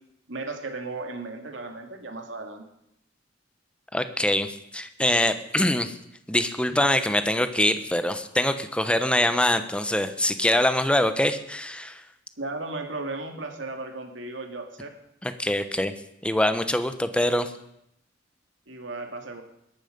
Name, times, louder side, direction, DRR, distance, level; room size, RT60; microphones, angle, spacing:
voice 1, 0.3-2.7 12.4-14.9 18.7-19.4, right 3 dB, 70° right, 4 dB, 2.6 m, -35 dB
voice 2, 3.9-5.9 6.3-12.0 15.2-15.9 16.2-17.5, left 1 dB, 5° left, 10 dB, 1.0 m, -24 dB
21.0 x 12.0 x 5.3 m, 0.78 s
head